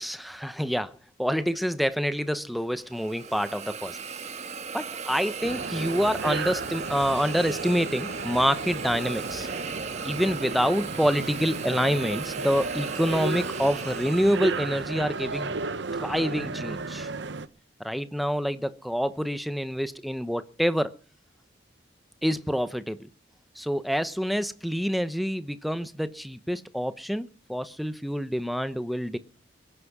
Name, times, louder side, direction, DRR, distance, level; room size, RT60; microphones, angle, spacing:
voice 1, 0.0-4.0 4.7-9.5 10.0-15.6 16.0-17.1 17.8-20.9 22.2-23.0 23.5-29.2, equal, ahead, 0.8 m, -27 dB
Hiss, 2.8-15.0, right 5 dB, 35° right, 1.4 m, -37 dB
sound 1, 5.4-17.5, right 4 dB, 70° right, 0.8 m, -34 dB
22.5 x 10.0 x 6.0 m
head